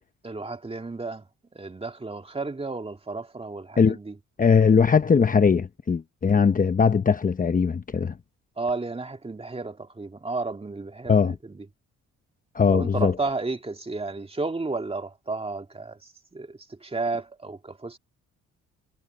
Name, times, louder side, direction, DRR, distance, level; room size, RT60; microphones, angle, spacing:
voice 1, 0.2-1.3 1.5-4.2 8.6-11.7 12.7-18.0, right 3 dB, 20° right, 2.3 m, -32 dB
voice 2, 4.4-8.2 11.1-11.3 12.5-13.1, left 6 dB, 25° left, 0.9 m, -20 dB
cardioid pair, 90°, 30 cm